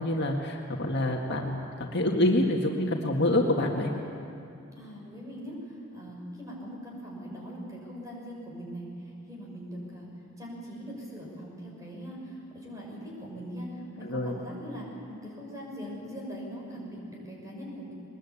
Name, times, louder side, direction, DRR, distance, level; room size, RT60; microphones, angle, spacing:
voice 1, 0.0-3.9 14.0-14.4, left 1 dB, 55° left, 0 dB, 2.0 m, -27 dB
voice 2, 4.8-5.6 5.9-8.9 9.3-10.1 10.4-13.7 14.0-17.9, equal, 15° right, -3 dB, 6.5 m, -41 dB
21.5 x 21.0 x 8.7 m, 2.6 s
head